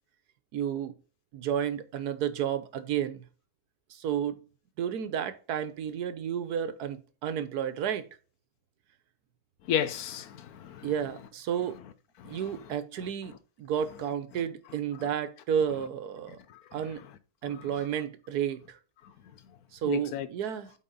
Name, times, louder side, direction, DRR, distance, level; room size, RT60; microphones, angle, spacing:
voice 1, 0.5-0.9 1.3-3.2 3.9-4.4 4.8-8.1 10.8-11.8 12.2-16.4 16.7-17.0 17.4-18.8 19.7-20.7, right 9 dB, 90° right, 1.4 m, -32 dB
voice 2, 9.7-10.9 12.2-12.6 16.5-16.6 17.5-17.7 19.9-20.3, left 9 dB, 75° left, 1.2 m, -33 dB
8.4 x 4.3 x 3.8 m
omnidirectional pair, 1.6 m